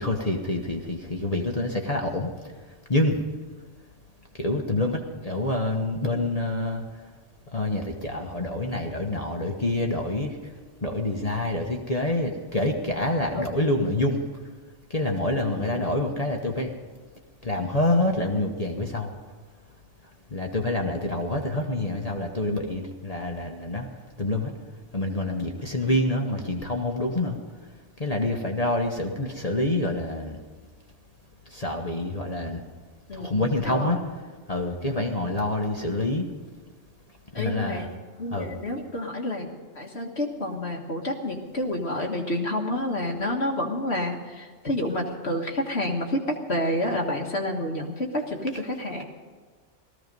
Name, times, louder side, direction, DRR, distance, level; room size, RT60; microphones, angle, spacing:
voice 1, 0.0-2.3 2.9-3.2 4.3-6.8 7.5-10.5 10.8-14.2 14.9-16.7 17.4-19.1 20.3-23.9 24.2-24.5 24.9-27.4 28.0-30.4 31.5-32.6 33.1-34.0 34.5-36.3 37.4-37.9 38.3-38.5, left 1 dB, 30° left, 1 dB, 1.2 m, -27 dB
voice 2, 33.1-34.0 37.3-37.9 38.2-39.5 39.8-49.0, left 1 dB, 55° left, 1 dB, 1.8 m, -29 dB
18.0 x 14.5 x 5.3 m, 1.5 s
omnidirectional pair, 1.3 m